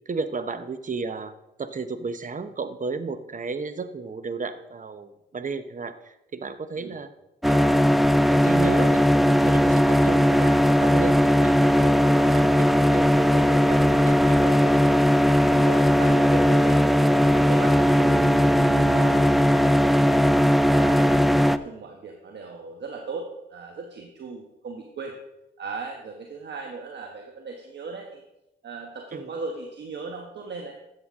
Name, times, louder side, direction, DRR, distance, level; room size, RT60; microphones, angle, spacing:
voice 1, 0.1-1.3 1.6-7.1 7.4-12.7 12.9-14.7 29.1-29.3, right 4 dB, 45° right, 11 dB, 1.0 m, -34 dB
sound 1, 7.4-21.6, equal, ahead, 0.5 m, -19 dB
voice 2, 15.5-16.8 17.2-20.2 20.7-25.2 25.6-28.2 28.6-30.7, right 4 dB, 65° right, 2 dB, 1.3 m, -38 dB
13.0 x 8.0 x 3.7 m, 0.88 s
supercardioid pair, 50°, 19 cm